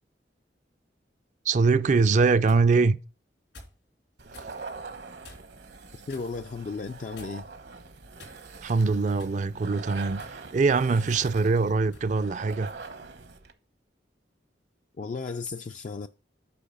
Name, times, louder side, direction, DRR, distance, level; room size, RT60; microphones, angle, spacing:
voice 1, 1.5-3.0 8.6-12.7, right 4 dB, 45° right, 0.4 m, -23 dB
sound 1, 2.1-2.7 3.5-3.8 4.3-4.5 5.2-5.6 6.1-6.3 7.2-7.6 8.2-8.7 9.2-9.4 10.1-10.4 11.1-11.3 11.9-12.1, left 2 dB, 85° left, 4.1 m, -49 dB
sound 2, 4.2-13.5, right 4 dB, 70° right, 1.0 m, -43 dB
voice 2, 6.1-7.5 15.0-16.1, left 4 dB, 45° left, 0.3 m, -34 dB
8.5 x 5.2 x 5.4 m
head